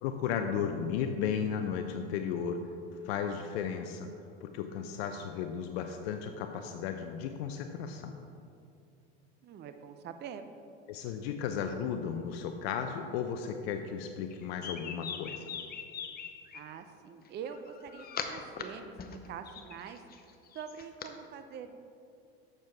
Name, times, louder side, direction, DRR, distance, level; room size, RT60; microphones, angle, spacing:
voice 1, 0.0-2.6 3.0-4.1 4.4-8.2 10.9-15.5, left 7 dB, 70° left, 6 dB, 0.6 m, -34 dB
voice 2, 9.4-10.5 16.5-20.3 20.5-21.8, right 7 dB, 30° right, 8 dB, 0.6 m, -45 dB
sound 1, 14.3-16.6 17.5-18.6 19.0-21.1, left 7 dB, 30° left, 0.7 m, -41 dB
7.4 x 6.7 x 4.6 m, 2.5 s
hypercardioid pair, 95°, 32 cm